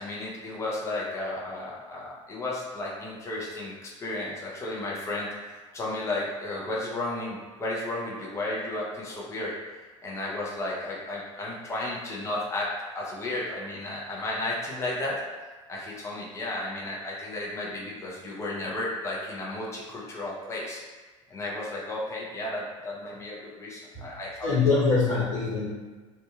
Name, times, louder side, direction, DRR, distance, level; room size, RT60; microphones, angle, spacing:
voice 1, 0.0-9.5 10.0-15.2 15.7-20.8 21.3-24.6, left 2 dB, 15° left, -5 dB, 0.6 m, -33 dB
voice 2, 24.4-25.7, left 4 dB, 80° left, -8 dB, 0.9 m, -23 dB
2.6 x 2.3 x 2.4 m, 1.3 s
figure-of-eight pair, 70°, 17 cm